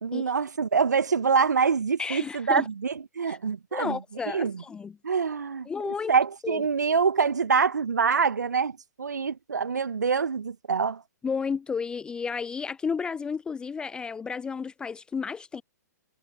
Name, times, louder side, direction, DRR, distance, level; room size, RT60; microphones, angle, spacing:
voice 1, 0.0-4.0 4.3-4.6 5.0-11.0, right 5 dB, 70° right, 1.5 m, -25 dB
voice 2, 2.0-2.6 3.3-3.4 3.7-4.9 5.7-6.1 6.4-6.6 11.2-15.6, left 5 dB, 10° left, 0.4 m, -32 dB
figure-of-eight pair, 120°, 10 cm